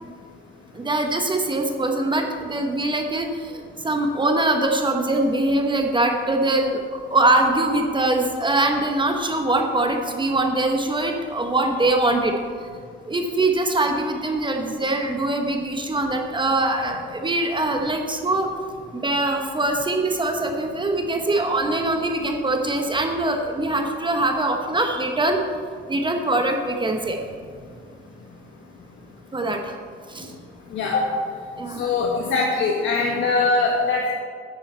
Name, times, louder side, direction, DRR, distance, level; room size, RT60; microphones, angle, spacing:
voice 1, 0.7-12.4 13.0-18.5 18.9-25.4 25.9-27.2 29.3-29.7 30.1-30.3 31.6-31.9, right 2 dB, 25° right, 4 dB, 1.0 m, -23 dB
voice 2, 30.7-31.1 31.8-34.1, left 3 dB, 75° left, -1 dB, 1.3 m, -22 dB
10.0 x 8.9 x 4.4 m, 2.1 s
cardioid pair, 90°, 20 cm